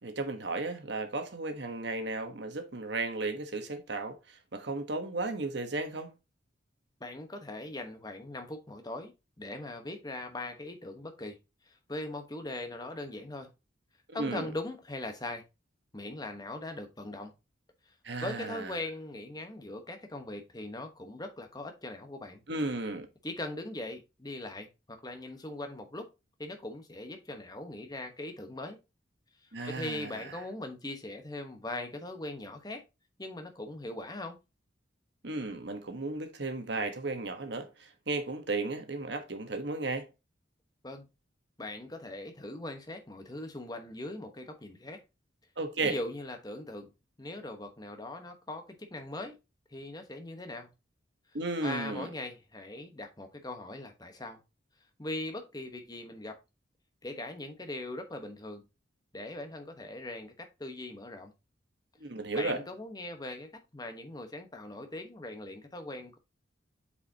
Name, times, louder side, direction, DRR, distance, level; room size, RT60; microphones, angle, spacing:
voice 1, 0.0-6.1 14.1-14.5 18.0-18.7 22.5-23.1 29.5-30.3 35.2-40.1 45.6-46.0 51.3-52.1 62.0-62.6, right 3 dB, 60° right, 1.2 m, -34 dB
voice 2, 7.0-9.1 9.4-11.4 11.7-13.5 14.1-15.4 15.9-17.3 18.2-22.4 23.2-24.7 25.0-26.1 26.4-28.8 29.7-32.8 33.2-34.4 40.8-41.1 41.6-45.0 45.8-46.9 47.2-49.4 49.7-50.7 51.6-54.4 55.0-56.4 57.0-58.6 59.1-61.3 62.3-66.2, left 2 dB, 20° left, 1.1 m, -40 dB
8.3 x 4.9 x 2.8 m
head